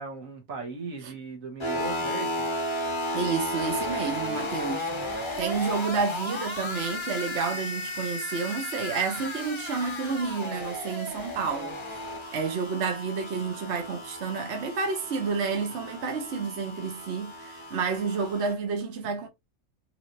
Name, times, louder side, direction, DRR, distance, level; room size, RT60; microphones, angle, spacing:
voice 1, 0.0-2.5, right 3 dB, 85° right, 1.7 m, -38 dB
sound 1, 1.6-18.5, left 1 dB, 30° left, 0.6 m, -34 dB
voice 2, 3.1-11.8 12.3-19.3, right 5 dB, 60° right, 1.2 m, -30 dB
4.8 x 3.1 x 2.6 m
omnidirectional pair, 1.4 m